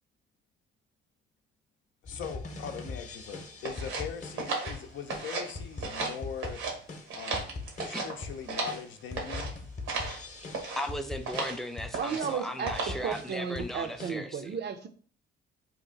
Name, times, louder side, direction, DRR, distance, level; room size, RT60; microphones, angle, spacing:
voice 1, 2.0-6.6 7.2-9.5, left 7 dB, 75° left, 0.6 m, -41 dB
sound 1, 2.0-14.1, left 3 dB, 40° left, 0.8 m, -42 dB
sound 2, 3.6-5.5 5.8-6.8 7.1-8.8 9.2-9.5 9.9-10.2 10.5-10.9 11.3-11.6 11.9-12.3 12.7-13.1, right 3 dB, 90° right, 1.0 m, -35 dB
voice 2, 10.8-14.6, left 1 dB, ahead, 0.4 m, -37 dB
voice 3, 11.9-14.9, right 7 dB, 60° right, 0.5 m, -34 dB
2.8 x 2.5 x 3.8 m
cardioid pair, 90°, 20 cm